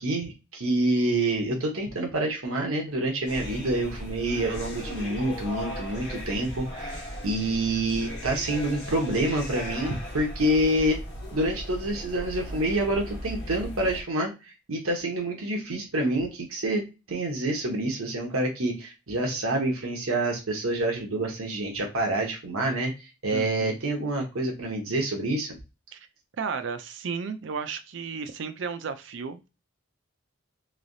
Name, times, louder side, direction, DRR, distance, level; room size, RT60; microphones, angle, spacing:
voice 1, 0.0-11.0 11.3-25.5, right 1 dB, 80° right, 1 dB, 0.9 m, -27 dB
sound 1, 3.3-14.0, equal, 50° left, 1.1 m, -37 dB
voice 2, 23.3-23.8 25.9-26.1 26.4-29.5, right 5 dB, 55° right, 10 dB, 0.4 m, -34 dB
3.2 x 2.8 x 2.6 m, 0.28 s
head